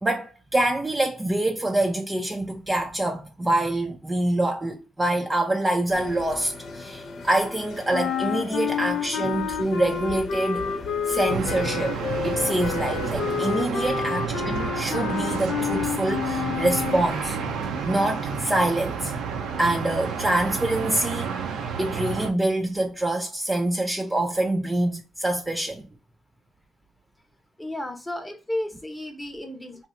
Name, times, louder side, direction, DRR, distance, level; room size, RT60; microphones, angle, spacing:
voice 1, 0.0-10.7 11.0-12.0 12.2-17.4 17.8-19.1 19.6-21.4 21.8-25.9, right 1 dB, 15° right, 0.4 m, -25 dB
sound 1, 5.9-13.5, left 3 dB, 55° left, 0.7 m, -40 dB
sound 2, 7.9-17.1, left 8 dB, 80° left, 0.4 m, -29 dB
sound 3, 11.3-22.3, right 6 dB, 80° right, 0.6 m, -30 dB
voice 2, 27.6-29.9, left 1 dB, 10° left, 0.8 m, -33 dB
2.9 x 2.0 x 3.6 m
cardioid pair, 90°, 0 cm